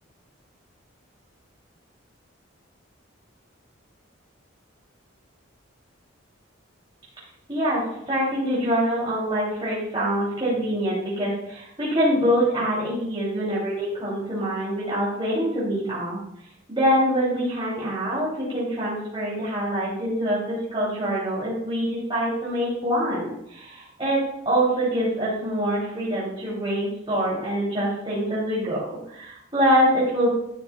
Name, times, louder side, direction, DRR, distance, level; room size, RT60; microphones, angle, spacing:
voice 1, 7.5-16.2 16.7-30.3, equal, 25° right, -8 dB, 2.7 m, -25 dB
11.5 x 9.8 x 2.3 m, 0.79 s
head